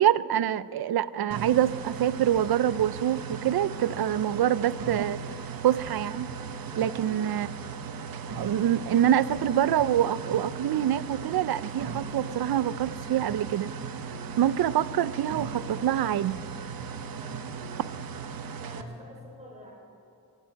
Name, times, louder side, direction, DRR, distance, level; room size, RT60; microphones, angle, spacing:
voice 1, 0.0-5.2 5.6-6.3 6.8-7.5 8.3-13.7 14.4-16.4, right 11 dB, 85° right, 18 dB, 0.5 m, -25 dB
sound 1, 1.3-18.8, right 5 dB, 70° right, 0.9 m, -37 dB
voice 2, 6.7-7.3 17.1-17.5 18.6-19.7, equal, 20° right, -2 dB, 4.0 m, -47 dB
17.5 x 16.0 x 4.6 m, 2.7 s
wide cardioid pair, 180°, 36 cm